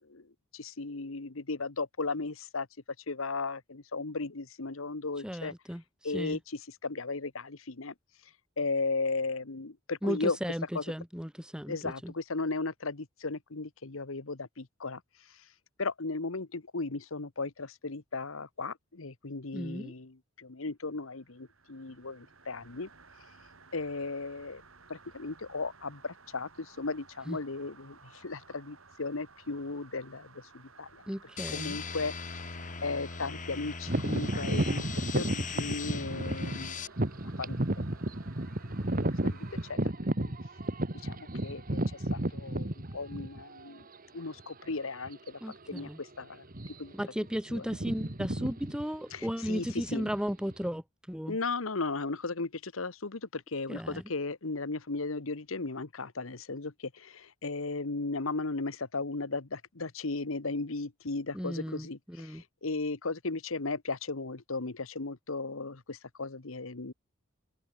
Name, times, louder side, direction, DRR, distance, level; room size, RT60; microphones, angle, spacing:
voice 1, 0.6-2.6 3.1-5.5 6.0-6.4 6.8-7.9 8.6-10.4 10.7-10.8 11.7-13.0 13.2-14.5 14.8-15.0 15.8-20.1 20.6-21.2 21.7-22.2 22.5-22.9 23.7-24.6 25.1-26.5 26.8-27.9 28.2-30.2 30.8-30.9 31.5-32.1 32.8-34.8 35.1-36.7 37.4-37.6 39.2-39.3 41.1-41.2 41.4-41.6 42.3-42.7 42.9-43.8 44.1-45.2 45.7-45.9 46.2-46.3 46.8-46.9 47.5-47.7 49.1-50.1 51.3-53.2 53.5-56.7 57.4-62.0 62.6-66.9, left 3 dB, 75° left, 1.3 m, -35 dB
voice 2, 5.2-6.4 10.0-12.1 19.5-19.9 27.3-27.4 31.1-31.8 45.4-46.0 46.9-51.4 53.7-54.0 61.3-62.4, equal, 5° right, 2.6 m, -35 dB
sound 1, 21.0-39.7, right 4 dB, 75° right, 7.4 m, -56 dB
sound 2, 31.4-36.9, left 5 dB, 40° left, 2.0 m, -39 dB
sound 3, 33.9-43.6 44.3-44.4 45.0-45.3 45.6-45.8 46.4-47.0 47.3-50.7, right 1 dB, 45° right, 2.2 m, -33 dB
head